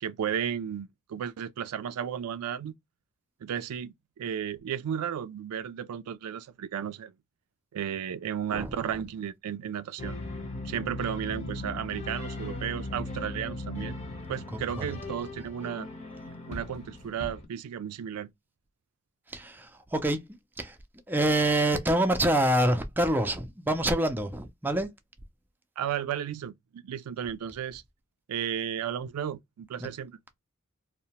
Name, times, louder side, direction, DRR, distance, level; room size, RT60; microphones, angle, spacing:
voice 1, 0.0-2.7 3.4-7.1 7.7-10.1 10.6-14.0 14.3-15.9 16.5-18.3 25.8-27.8 28.3-30.2, right 9 dB, 85° right, 0.3 m, -34 dB
voice 2, 8.5-9.0 14.5-14.9 19.3-20.3 20.6-20.8 21.1-24.9 29.8-29.9, right 1 dB, 10° right, 0.4 m, -26 dB
sound 1, 10.0-17.4, left 2 dB, 30° left, 0.7 m, -38 dB
2.7 x 2.1 x 2.8 m
head